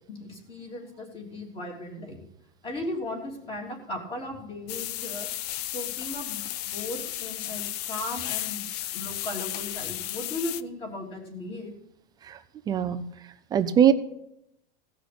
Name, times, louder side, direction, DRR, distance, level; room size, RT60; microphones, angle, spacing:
voice 1, 0.1-2.2 2.6-5.3 5.7-8.6 8.9-11.7, left 1 dB, 20° left, 1 dB, 3.2 m, -37 dB
sound 1, 4.7-10.6, left 14 dB, 45° left, 0.5 m, -34 dB
voice 2, 12.7-13.0 13.5-13.9, right 9 dB, 15° right, 9 dB, 0.5 m, -21 dB
17.0 x 6.2 x 8.5 m, 0.78 s
supercardioid pair, 165°, 29 cm